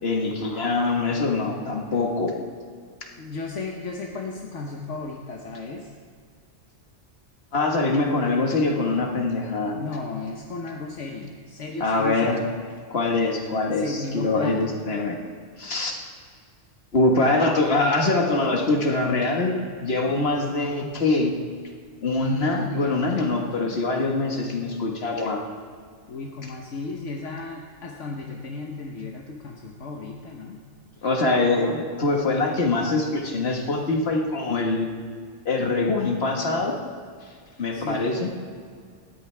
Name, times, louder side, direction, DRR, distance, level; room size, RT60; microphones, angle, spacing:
voice 1, 0.0-2.4 7.5-9.8 11.8-12.4 12.9-15.2 15.6-16.0 16.9-21.3 22.0-25.4 31.0-34.9 35.5-36.8 37.6-38.3, left 2 dB, 55° left, 1 dB, 1.8 m, -23 dB
voice 2, 3.2-5.9 9.7-12.5 13.7-14.8 26.1-30.6 37.7-38.2, left 3 dB, 70° left, 0 dB, 1.4 m, -34 dB
19.0 x 13.5 x 3.4 m, 2.1 s
omnidirectional pair, 1.3 m